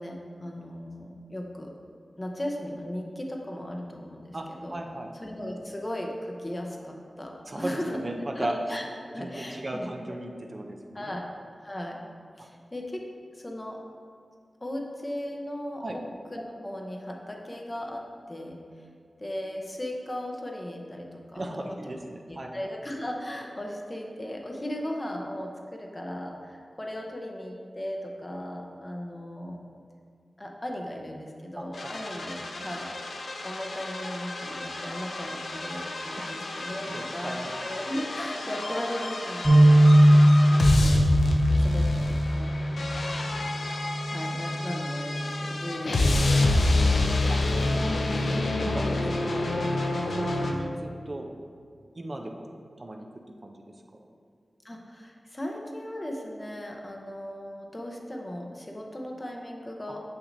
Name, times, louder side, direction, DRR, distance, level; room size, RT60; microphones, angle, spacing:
voice 1, 0.0-1.7 2.2-4.8 5.2-8.0 8.3-10.2 10.9-11.3 11.6-12.0 12.4-13.0 13.3-13.8 14.6-16.0 16.3-18.6 19.2-21.9 22.3-29.6 30.4-41.0 41.6-43.3 44.1-48.5 54.6-60.0, left 1 dB, 25° left, 1 dB, 0.7 m, -37 dB
voice 2, 4.3-5.1 7.5-8.6 9.2-11.1 12.4-12.5 15.8-16.0 21.3-22.5 31.6-31.9 36.2-36.3 36.9-37.5 46.5-46.9 47.3-47.4 48.1-48.8 49.1-49.4 50.1-51.3 52.0-52.4 52.8-53.1 53.4-53.5, right 1 dB, 45° right, 2 dB, 0.5 m, -36 dB
sound 1, 31.7-50.5, left 2 dB, 80° left, 0.5 m, -28 dB
sound 2, 39.4-45.7, right 1 dB, 15° right, 1.0 m, -21 dB
6.4 x 5.9 x 2.6 m, 2.2 s
wide cardioid pair, 70°, 0 cm